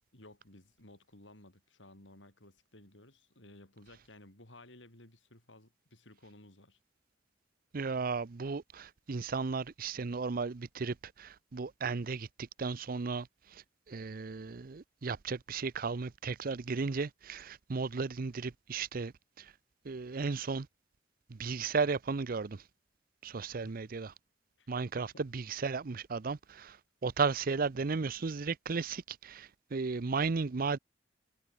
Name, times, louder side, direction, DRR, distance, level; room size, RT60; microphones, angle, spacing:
voice 1, 0.1-6.8 23.6-23.8 24.6-24.7 25.0-25.2, left 1 dB, 80° left, 7.1 m, -56 dB
voice 2, 7.7-19.1 19.4-19.5 19.8-20.7 21.3-22.6 23.2-24.1 24.7-26.8 27.0-30.8, right 4 dB, 50° right, 0.6 m, -35 dB
head